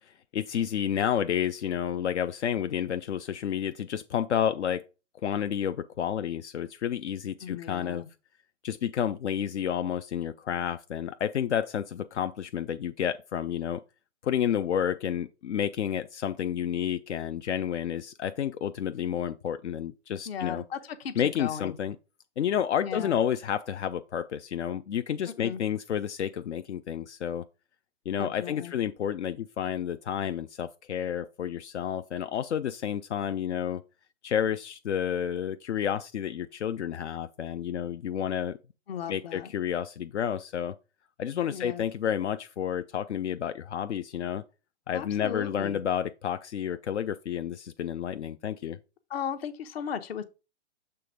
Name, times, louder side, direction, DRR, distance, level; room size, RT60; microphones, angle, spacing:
voice 1, 0.1-4.8 5.2-8.0 8.6-13.8 14.2-20.6 21.2-22.0 22.4-27.4 28.1-33.8 34.2-38.6 39.1-40.7 41.2-44.4 44.9-48.8, left 9 dB, 75° left, 0.5 m, -30 dB
voice 2, 7.4-8.1 20.3-21.7 22.8-23.2 25.4-25.6 28.2-28.7 38.9-39.5 41.5-41.8 44.9-45.8 49.1-50.2, left 8 dB, 60° left, 1.0 m, -36 dB
6.9 x 3.4 x 5.0 m
figure-of-eight pair, 110°, 35 cm